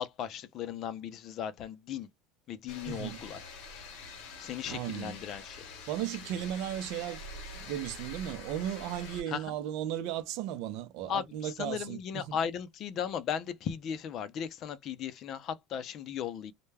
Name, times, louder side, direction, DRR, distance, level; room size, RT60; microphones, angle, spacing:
voice 1, 0.0-2.1 2.5-3.4 4.4-5.6 9.3-9.4 11.1-16.5, left 8 dB, 50° left, 0.5 m, -36 dB
sound 1, 2.7-9.2, left 3 dB, 75° left, 0.9 m, -45 dB
voice 2, 2.8-3.2 4.7-5.2 5.9-7.2 7.5-12.4, right 11 dB, 70° right, 0.5 m, -35 dB
2.2 x 2.2 x 3.2 m
supercardioid pair, 115°, 0 cm